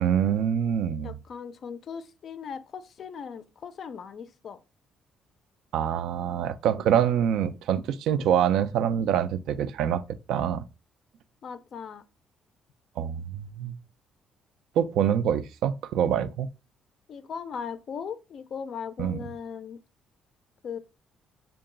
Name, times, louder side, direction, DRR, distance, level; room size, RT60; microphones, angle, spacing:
voice 1, 0.0-1.2 5.7-10.0 10.3-10.6 13.0-13.8 14.8-16.5 19.0-19.2, right 9 dB, 80° right, 0.3 m, -25 dB
voice 2, 1.0-4.6 11.4-12.0 17.1-19.8 20.6-20.8, left 6 dB, 45° left, 0.3 m, -38 dB
3.7 x 2.3 x 3.7 m
cardioid pair, 170°, 0 cm